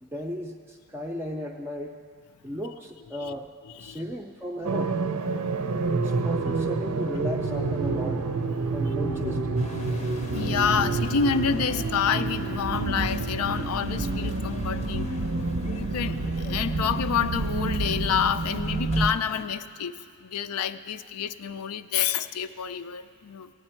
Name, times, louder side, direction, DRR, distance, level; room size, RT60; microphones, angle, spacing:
voice 1, 0.0-2.0 2.4-3.5 3.8-5.0 6.0-8.3 8.7-9.6, equal, 10° right, 1 dB, 0.4 m, -36 dB
sound 1, 4.6-19.1, right 3 dB, 90° right, 0.6 m, -28 dB
voice 2, 5.2-5.8 10.3-15.1 15.6-23.5, left 7 dB, 85° left, 11 dB, 0.4 m, -28 dB
sound 2, 9.6-19.5, left 2 dB, 30° left, 0.6 m, -44 dB
16.0 x 9.8 x 4.4 m, 2.2 s
head